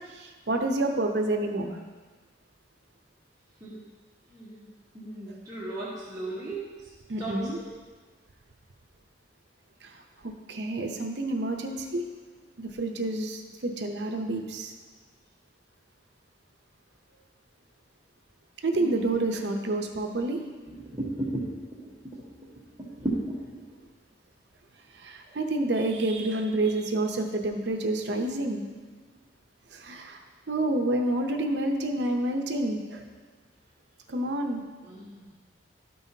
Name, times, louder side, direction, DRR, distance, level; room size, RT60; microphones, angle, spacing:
voice 1, 0.1-1.8 7.1-7.6 9.8-9.9 10.2-12.0 12.6-14.7 18.6-20.4 25.0-28.6 29.7-30.2 30.5-33.0 34.1-34.6, right 2 dB, 65° right, 4 dB, 0.7 m, -28 dB
voice 2, 4.3-4.7 4.9-6.7 7.2-7.4 18.7-18.8 20.7-21.4 21.8-21.9 22.8-23.6 34.8-35.2, right 1 dB, 20° right, -8 dB, 1.1 m, -34 dB
12.0 x 5.5 x 2.8 m, 1.4 s
head